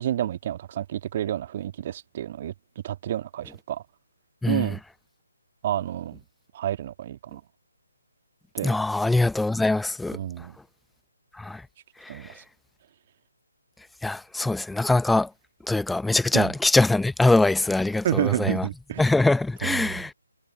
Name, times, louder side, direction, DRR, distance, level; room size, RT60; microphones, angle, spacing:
voice 1, 0.0-3.8 4.5-4.8 5.6-6.2 6.5-7.4 8.5-8.8 10.1-10.5 12.1-12.4 16.3-16.5 18.0-19.0 19.6-20.0, right 11 dB, 30° right, 1.8 m, -29 dB
voice 2, 8.6-10.2 11.4-11.6 12.0-12.3 14.0-15.3 15.7-18.7 19.0-20.1, left 2 dB, ahead, 1.0 m, -23 dB
figure-of-eight pair, 140°, 0 cm